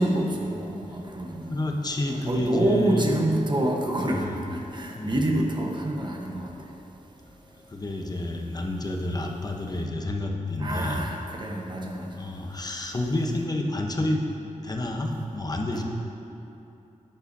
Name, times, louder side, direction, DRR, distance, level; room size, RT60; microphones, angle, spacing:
voice 1, 0.0-1.6 2.1-4.2 4.5-6.5 10.6-12.1 15.7-15.8, right 1 dB, 35° right, 1 dB, 1.0 m, -27 dB
voice 2, 1.5-3.0 4.0-4.4 5.0-5.2 7.7-11.0 12.1-14.2 14.6-15.8, left 1 dB, 30° left, 2 dB, 0.8 m, -29 dB
10.5 x 9.0 x 2.7 m, 2.8 s
wide cardioid pair, 110°, 14 cm